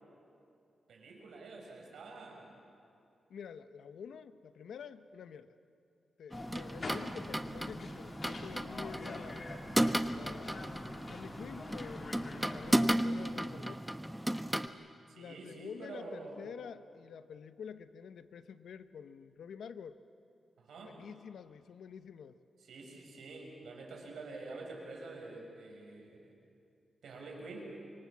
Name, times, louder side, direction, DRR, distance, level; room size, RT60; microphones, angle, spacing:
voice 1, 0.9-2.5 15.1-16.5 20.6-20.9 22.7-26.3 27.0-27.7, right 3 dB, 85° right, 1 dB, 5.8 m, -47 dB
voice 2, 3.3-5.6 6.2-9.5 10.1-13.8 15.2-20.0 20.7-22.4, left 7 dB, 85° left, 12 dB, 0.8 m, -48 dB
sound 1, 6.3-13.0, left 3 dB, 50° left, 2.8 m, -47 dB
sound 2, 6.3-14.7, right 1 dB, 5° right, 0.9 m, -34 dB
25.5 x 23.5 x 7.3 m, 2.5 s
cardioid pair, 90°, 0 cm